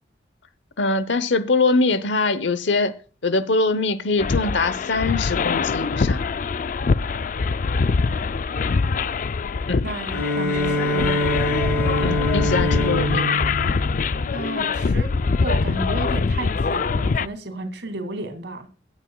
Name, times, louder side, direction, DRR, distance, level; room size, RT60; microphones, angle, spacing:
voice 1, 0.8-2.9 3.2-6.2 9.7-9.9 12.0-13.4, left 3 dB, 85° left, 0.9 m, -23 dB
sound 1, 4.2-17.3, left 4 dB, 45° left, 0.4 m, -23 dB
voice 2, 8.1-8.4 9.8-11.2 14.3-15.1 15.4-18.7, right 2 dB, 75° right, 2.5 m, -32 dB
Bowed string instrument, 10.1-14.8, left 1 dB, 70° left, 4.9 m, -25 dB
16.0 x 8.9 x 2.3 m
head